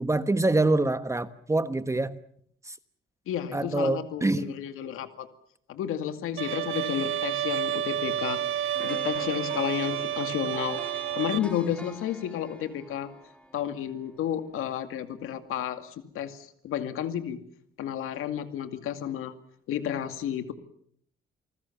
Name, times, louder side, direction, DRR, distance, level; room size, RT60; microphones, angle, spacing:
voice 1, 0.0-2.2 2.7-2.8 3.5-4.5, right 2 dB, 15° right, 11 dB, 1.2 m, -25 dB
voice 2, 3.3-5.3 5.7-10.8 11.1-13.1 13.5-17.4 17.8-19.3 19.7-20.5, left 10 dB, 85° left, 8 dB, 2.3 m, -32 dB
Bowed string instrument, 6.4-11.4, right 11 dB, 75° right, 1.3 m, -30 dB
sound 1, 8.7-14.8 15.2-15.3, left 1 dB, 5° left, 3.3 m, -46 dB
29.0 x 20.0 x 7.2 m, 0.67 s
cardioid pair, 115°, 21 cm